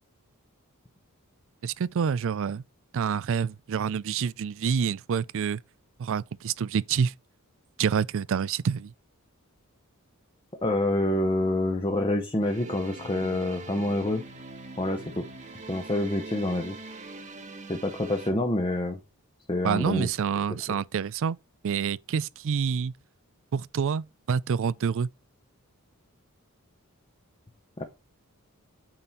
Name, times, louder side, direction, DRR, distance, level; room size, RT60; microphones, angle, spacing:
voice 1, 1.6-2.6 2.9-5.6 6.0-7.1 7.8-8.9 19.6-21.4 21.6-22.9 23.5-25.1, right 6 dB, 60° right, 0.4 m, -27 dB
voice 2, 10.6-14.2 14.8-15.3 15.7-16.8 17.7-19.0 19.5-20.1 20.7-20.8 27.8-27.9, left 1 dB, 20° left, 0.9 m, -27 dB
sound 1, 12.4-18.3, right 3 dB, 35° right, 1.3 m, -43 dB
9.0 x 4.2 x 4.4 m
head